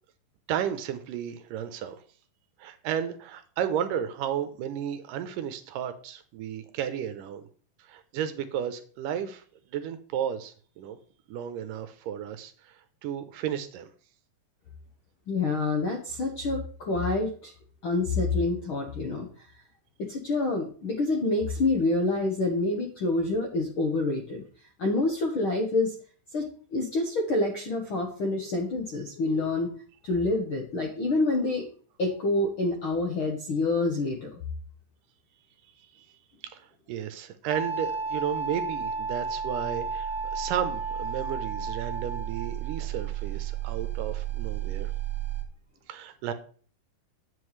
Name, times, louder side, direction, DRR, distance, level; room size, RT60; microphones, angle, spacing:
voice 1, 0.5-2.0 2.6-7.4 7.8-9.4 9.7-11.0 11.3-12.7 13.0-13.9 35.9-36.1 36.4-44.9 45.9-46.3, right 9 dB, 75° right, 10 dB, 2.2 m, -33 dB
voice 2, 15.3-17.5 17.8-19.3 20.0-24.4 24.8-25.9 26.3-26.4 26.7-29.7 30.0-31.7 32.0-34.4, left 2 dB, 65° left, 1 dB, 1.3 m, -27 dB
sound 1, 27.1-27.6 28.3-28.8 29.0-29.5 30.2-30.7 31.2-31.7, left 4 dB, 25° left, 5.8 m, -49 dB
sound 2, 37.5-45.4, right 6 dB, 50° right, 1.9 m, -32 dB
9.5 x 7.9 x 3.2 m, 0.44 s
omnidirectional pair, 4.0 m